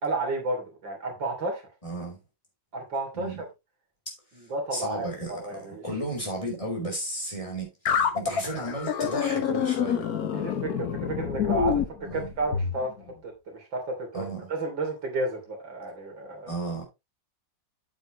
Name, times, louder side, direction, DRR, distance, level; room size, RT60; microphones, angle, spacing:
voice 1, 0.0-1.6 2.7-3.5 4.4-5.8 10.3-12.9 13.2-16.5, right 2 dB, 85° right, 3.8 m, -32 dB
voice 2, 1.8-2.2 3.1-3.4 4.1-4.2 4.7-10.1 12.1-12.3 14.1-14.5 16.5-16.8, right 1 dB, 15° left, 4.4 m, -34 dB
sound 1, 7.9-12.8, left 7 dB, 60° left, 1.5 m, -27 dB
9.0 x 8.1 x 3.1 m
omnidirectional pair, 2.0 m